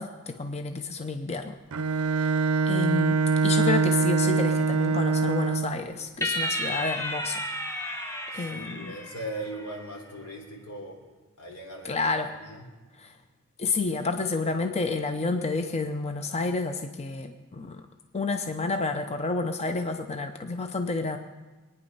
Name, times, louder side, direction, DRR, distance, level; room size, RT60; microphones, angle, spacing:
voice 1, 0.0-1.5 2.2-2.4 2.7-7.5 8.3-9.0 11.8-12.3 13.0-13.1 13.6-17.8 18.1-21.2, left 3 dB, 30° left, 6 dB, 0.6 m, -30 dB
Bowed string instrument, 1.7-5.9, right 4 dB, 70° right, 0.5 m, -24 dB
sound 1, 6.2-9.8, equal, 10° left, 1.3 m, -32 dB
voice 2, 8.3-11.0 11.4-12.0 12.4-12.6, right 1 dB, 85° left, 0 dB, 3.7 m, -39 dB
22.0 x 9.6 x 5.5 m, 1.3 s
head